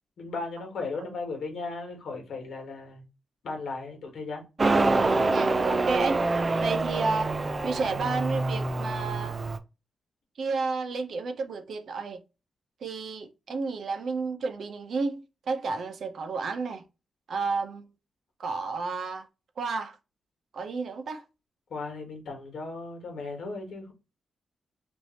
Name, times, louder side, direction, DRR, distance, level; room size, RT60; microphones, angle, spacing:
voice 1, 0.2-3.0 3.4-4.4 21.7-23.9, left 3 dB, 65° left, 1.4 m, -36 dB
Motorcycle, 4.6-9.6, right 3 dB, 25° right, 0.4 m, -26 dB
voice 2, 5.3-7.4 7.6-9.4 10.4-12.2 12.8-16.8 17.3-17.9 18.4-19.3 19.6-20.0 20.5-21.2, right 4 dB, 60° right, 0.7 m, -31 dB
3.2 x 2.6 x 4.1 m
wide cardioid pair, 175°, 0 cm